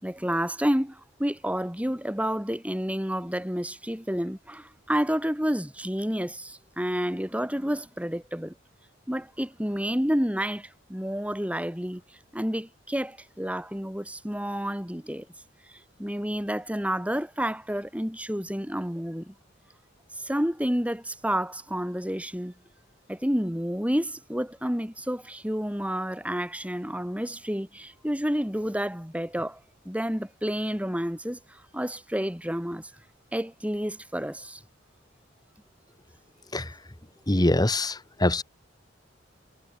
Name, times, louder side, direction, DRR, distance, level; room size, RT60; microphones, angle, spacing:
voice 1, 0.0-8.5 9.1-12.0 12.3-15.3 16.0-19.3 20.2-22.5 23.1-29.6 29.8-32.9 33.3-34.6, equal, 5° right, 5.8 m, -30 dB
voice 2, 37.3-38.4, left 1 dB, 20° left, 1.8 m, -23 dB
head